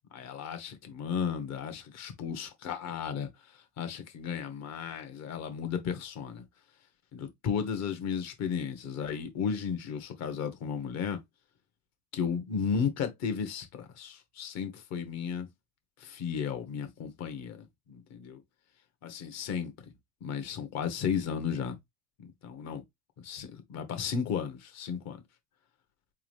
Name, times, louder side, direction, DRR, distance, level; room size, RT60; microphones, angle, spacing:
voice 1, 0.1-3.3 3.8-6.4 7.1-11.2 12.1-15.5 16.0-17.6 17.9-18.4 19.0-19.7 20.2-21.8 22.2-22.8 23.2-25.2, left 7 dB, 50° left, 1.4 m, -34 dB
3.8 x 2.7 x 3.3 m
hypercardioid pair, 80°, 35 cm